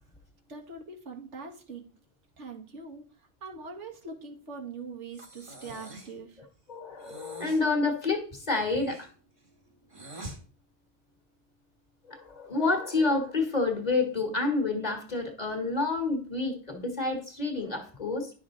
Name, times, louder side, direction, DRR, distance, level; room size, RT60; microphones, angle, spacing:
voice 1, 0.5-1.9 2.4-6.4, right 4 dB, 80° right, 1 dB, 1.9 m, -42 dB
Breathing, 5.1-6.2 7.0-7.7 8.4-10.4, right 2 dB, 30° right, 1.2 m, -46 dB
voice 2, 6.7-9.1 12.1-18.3, left 3 dB, 35° left, 4 dB, 1.7 m, -29 dB
10.5 x 6.1 x 3.8 m, 0.41 s
omnidirectional pair, 1.2 m